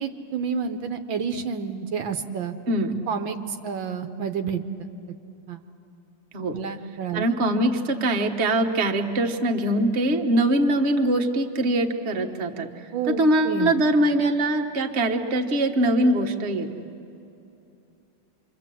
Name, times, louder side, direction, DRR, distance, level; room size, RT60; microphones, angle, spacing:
voice 1, 0.0-2.6 3.1-4.9 5.5-5.6 6.5-7.3 12.9-13.7, right 6 dB, 75° right, 6 dB, 1.7 m, -29 dB
voice 2, 2.7-3.0 6.3-6.6 7.1-12.7 13.1-16.7, right 1 dB, 35° right, 3 dB, 1.4 m, -22 dB
27.0 x 25.5 x 7.7 m, 2.7 s
omnidirectional pair, 2.2 m